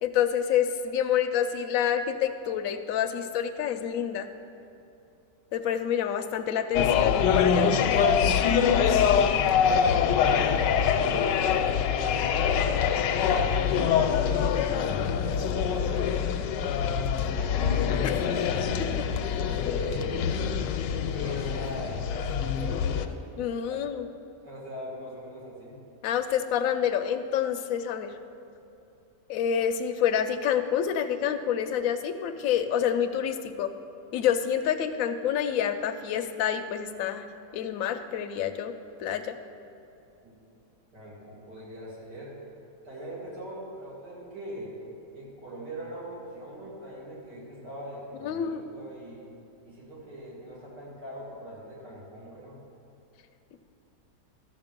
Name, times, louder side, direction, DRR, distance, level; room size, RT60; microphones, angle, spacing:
voice 1, 0.0-4.3 5.5-7.7 18.0-18.1 19.2-19.3 19.7-19.8 23.4-24.1 26.0-28.1 29.3-33.7 34.1-37.3 37.5-38.7 39.0-39.3 48.2-48.6, left 9 dB, 70° left, 8 dB, 0.8 m, -28 dB
sound 1, 6.7-23.1, left 7 dB, 85° left, 1.2 m, -24 dB
voice 2, 9.6-13.1 13.9-16.2 16.8-18.7 19.2-20.3 20.9-23.2 23.7-23.8 24.4-25.8 40.2-40.3 40.9-42.4 42.8-44.8 45.1-49.3 49.6-52.6, right 1 dB, 70° right, -6 dB, 2.9 m, -41 dB
12.5 x 6.8 x 5.2 m, 2.7 s
omnidirectional pair, 1.9 m